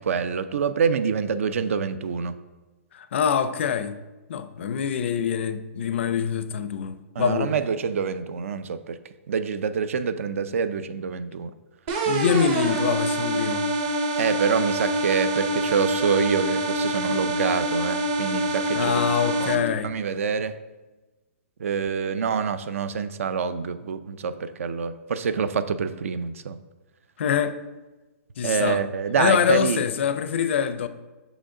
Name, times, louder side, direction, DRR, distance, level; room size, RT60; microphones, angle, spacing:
voice 1, 0.1-2.4 7.2-9.0 9.3-11.5 14.2-19.1 19.4-20.6 21.6-26.6 28.4-29.8, right 6 dB, 70° right, 0.4 m, -26 dB
voice 2, 2.9-4.0 4.3-7.5 12.1-13.7 18.7-20.0 27.2-27.6 28.4-28.8 29.2-30.9, left 7 dB, 55° left, 0.4 m, -24 dB
sound 1, 11.9-19.6, right 1 dB, 30° right, 0.6 m, -26 dB
6.6 x 5.0 x 3.7 m
hypercardioid pair, 165°, 8 cm